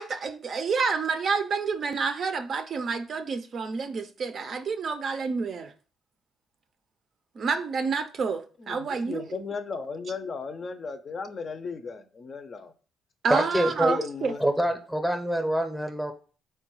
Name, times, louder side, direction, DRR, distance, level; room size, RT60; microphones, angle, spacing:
voice 1, 0.0-5.7 7.4-9.2 13.2-14.3, right 5 dB, 50° right, 0.4 m, -28 dB
voice 2, 8.6-12.7 13.6-14.5, left 5 dB, 45° left, 0.5 m, -36 dB
voice 3, 13.3-13.9 14.4-16.1, right 1 dB, ahead, 0.7 m, -26 dB
3.7 x 2.2 x 4.4 m
cardioid pair, 95°, 0 cm